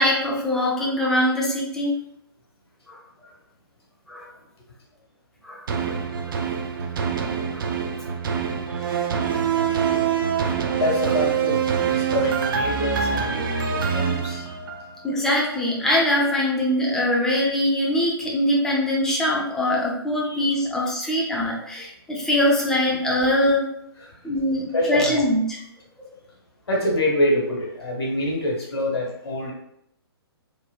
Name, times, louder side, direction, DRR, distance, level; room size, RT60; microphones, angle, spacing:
voice 1, 0.0-2.0 2.9-3.0 4.1-4.3 5.4-5.9 7.5-7.9 10.4-10.5 15.0-23.7 24.2-25.6 26.0-26.1, left 1 dB, 5° left, -4 dB, 0.4 m, -23 dB
sound 1, 5.7-15.1 15.5-15.6, right 7 dB, 55° right, 0.4 m, -25 dB
voice 2, 8.7-9.4 10.8-14.6 20.3-20.4 24.0-24.2 24.7-25.1 26.7-29.5, left 1 dB, 75° left, -2 dB, 1.0 m, -26 dB
3.1 x 2.1 x 2.2 m, 0.75 s
figure-of-eight pair, 130°, 13 cm